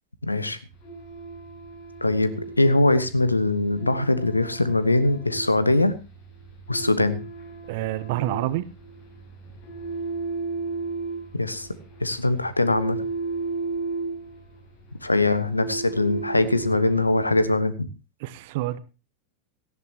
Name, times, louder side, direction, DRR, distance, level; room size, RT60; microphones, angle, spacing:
voice 1, 0.2-0.6 2.0-6.0 6.7-7.2 11.3-11.7 12.0-13.0 15.0-17.9, left 2 dB, 85° left, 14 dB, 1.2 m, -22 dB
sound 1, 0.7-17.4, right 3 dB, 50° left, 7.2 m, -35 dB
voice 2, 7.7-8.7 18.2-18.8, right 15 dB, 50° right, 16 dB, 1.0 m, -27 dB
17.5 x 13.5 x 2.9 m, 0.28 s
figure-of-eight pair, 90°, 0 cm